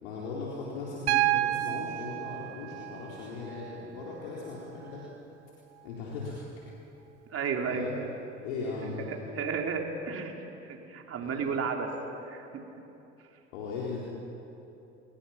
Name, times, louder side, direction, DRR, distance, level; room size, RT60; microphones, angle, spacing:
voice 1, 0.0-5.0 5.8-6.4 7.6-7.9 8.4-9.5 11.2-11.4 13.5-14.0, left 4 dB, 75° left, -6 dB, 4.3 m, -38 dB
Piano, 1.1-5.1 6.6-6.7, right 16 dB, 75° right, 0.9 m, -31 dB
voice 2, 7.3-7.9 8.8-11.9 12.3-12.6, right 5 dB, 45° right, 2 dB, 3.6 m, -33 dB
29.0 x 22.0 x 5.9 m, 2.9 s
hypercardioid pair, 65°, 34 cm